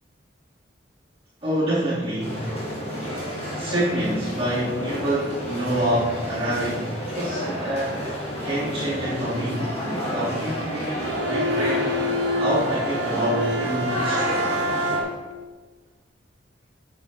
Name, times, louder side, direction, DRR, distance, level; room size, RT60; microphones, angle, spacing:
voice 1, 1.4-2.5 3.6-8.0 8.4-11.9 12.4-14.5, right 1 dB, 30° right, -14 dB, 2.6 m, -27 dB
sound 1, 2.2-15.0, equal, 35° left, 2.1 m, -30 dB
Bowed string instrument, 11.0-15.4, equal, 80° right, 0.6 m, -27 dB
8.0 x 7.7 x 2.9 m, 1.3 s
head